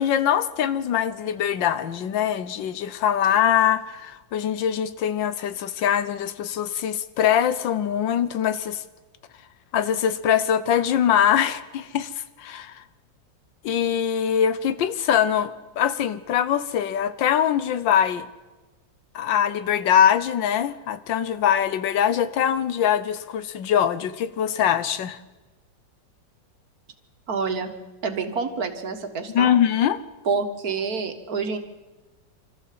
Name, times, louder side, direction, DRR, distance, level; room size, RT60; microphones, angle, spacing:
voice 1, 0.0-8.8 9.7-12.1 12.4-12.8 13.6-18.3 19.1-25.2 29.3-30.0, left 9 dB, 85° left, 14 dB, 1.6 m, -23 dB
voice 2, 27.3-27.7 28.0-29.5 30.3-31.6, right 5 dB, 55° right, 7 dB, 2.0 m, -27 dB
25.0 x 14.0 x 7.6 m, 1.2 s
omnidirectional pair, 2.0 m